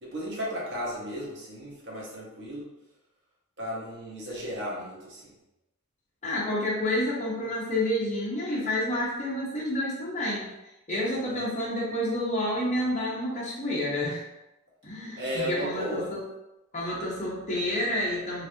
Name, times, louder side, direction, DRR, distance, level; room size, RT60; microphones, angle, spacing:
voice 1, 0.0-2.7 3.6-5.3 11.2-11.4 15.2-16.1, equal, 55° right, -5 dB, 0.9 m, -34 dB
voice 2, 6.2-10.5 10.9-14.2 14.8-16.3 16.7-18.5, left 1 dB, 30° left, -5 dB, 0.8 m, -29 dB
3.2 x 2.6 x 2.6 m, 0.93 s
head